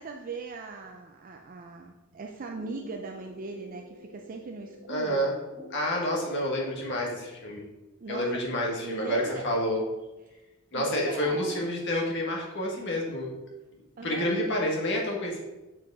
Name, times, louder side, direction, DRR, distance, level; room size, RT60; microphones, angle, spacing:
voice 1, 0.0-5.3 8.0-8.4 8.8-9.5 10.3-10.4 10.7-11.7 14.0-14.3, right 4 dB, 40° right, 3 dB, 0.4 m, -39 dB
sound 1, 2.5-7.4, left 2 dB, ahead, 1.5 m, -50 dB
voice 2, 4.9-5.3 5.7-7.6 8.1-9.8 10.7-13.4 14.0-15.4, left 1 dB, 60° left, -1 dB, 1.5 m, -29 dB
6.3 x 4.6 x 4.7 m, 1.1 s
head